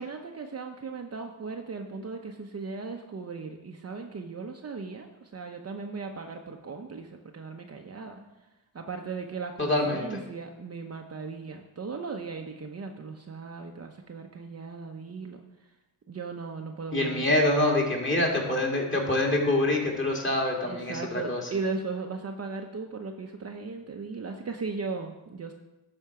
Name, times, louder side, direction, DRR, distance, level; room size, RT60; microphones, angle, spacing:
voice 1, 0.0-8.2 8.7-15.4 16.1-17.6 20.7-25.5, right 4 dB, 30° right, 3 dB, 0.8 m, -37 dB
voice 2, 9.6-10.2 16.9-21.4, left 1 dB, 25° left, -1 dB, 2.6 m, -25 dB
11.5 x 4.4 x 4.9 m, 1.0 s
supercardioid pair, 70°, 47 cm